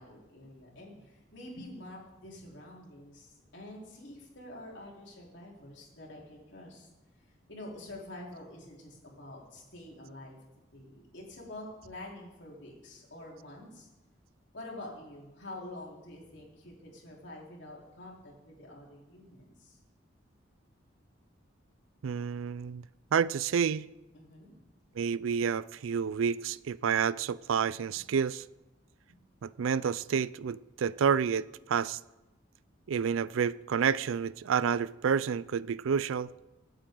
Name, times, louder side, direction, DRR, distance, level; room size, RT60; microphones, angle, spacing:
voice 1, 0.0-6.9 7.5-10.4 10.7-13.9 14.5-19.8 24.1-24.6 24.9-25.0, left 1 dB, 65° left, 3.8 m, -47 dB
voice 2, 22.0-22.8 23.1-23.9 25.0-28.4 29.4-32.0 32.9-36.3, right 7 dB, 90° right, 0.4 m, -29 dB
25.5 x 8.7 x 3.8 m
head